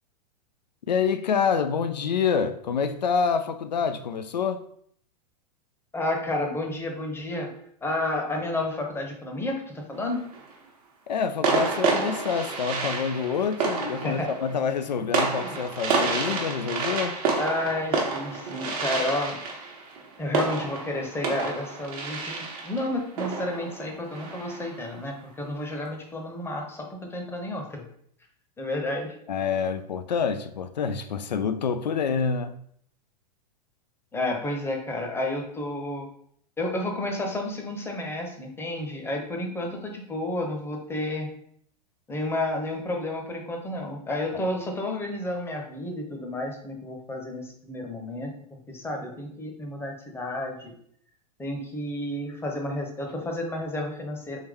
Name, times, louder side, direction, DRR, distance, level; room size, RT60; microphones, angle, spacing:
voice 1, 0.9-4.6 11.1-17.2 29.3-32.6 44.3-44.4, left 6 dB, 90° left, 0.4 m, -27 dB
voice 2, 5.9-7.5 7.8-10.2 14.0-14.3 15.3-15.6 17.4-19.4 20.2-27.8 28.6-29.2 34.1-36.1 36.6-41.3 42.1-50.7 51.4-54.4, left 1 dB, 10° left, 0.8 m, -31 dB
sound 1, 9.9-10.5 11.4-24.8, right 4 dB, 60° right, 1.1 m, -29 dB
3.6 x 3.0 x 3.5 m
hypercardioid pair, 110°, 21 cm